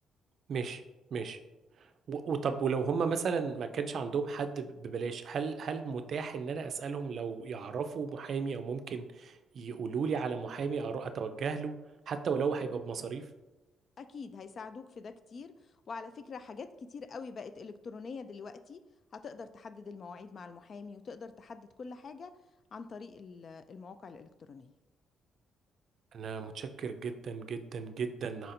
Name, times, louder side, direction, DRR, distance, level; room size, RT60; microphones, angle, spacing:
voice 1, 0.5-0.8 1.1-1.4 1.8-11.7 12.1-13.2 26.1-28.5, right 5 dB, 60° right, 8 dB, 0.4 m, -34 dB
voice 2, 14.0-15.5 15.9-18.8 19.1-22.4 22.7-24.8, left 4 dB, 50° left, 11 dB, 0.3 m, -45 dB
4.3 x 2.6 x 4.1 m, 1.1 s
cardioid pair, 90°, 0 cm